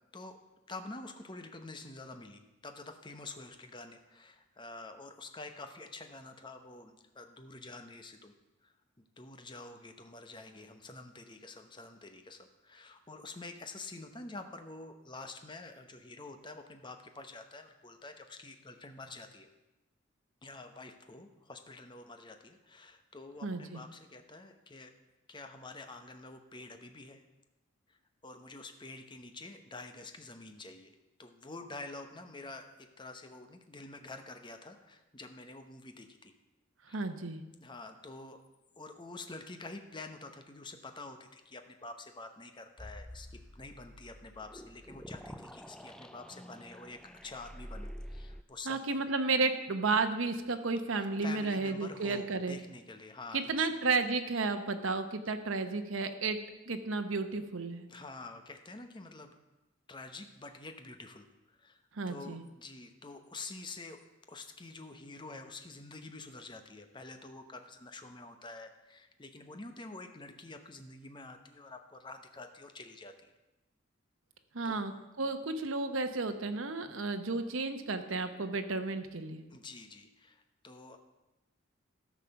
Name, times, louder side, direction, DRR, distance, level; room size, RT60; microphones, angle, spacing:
voice 1, 0.7-8.3 8.6-19.5 20.4-24.9 25.3-27.2 27.9-28.0 28.2-36.3 36.9-37.1 37.6-38.4 38.8-48.8 51.2-53.7 57.9-59.4 59.9-61.8 62.1-64.0 64.3-73.3 74.6-74.8 79.5-81.0, left 3 dB, 25° left, 6 dB, 0.9 m, -48 dB
voice 2, 23.4-23.8 36.9-37.4 48.7-52.6 53.3-56.4 56.7-57.9 61.9-62.4 74.5-79.4, right 3 dB, 80° right, 7 dB, 0.9 m, -32 dB
sound 1, 42.8-48.4, equal, 5° left, 0.3 m, -47 dB
13.5 x 4.9 x 6.9 m, 1.0 s
head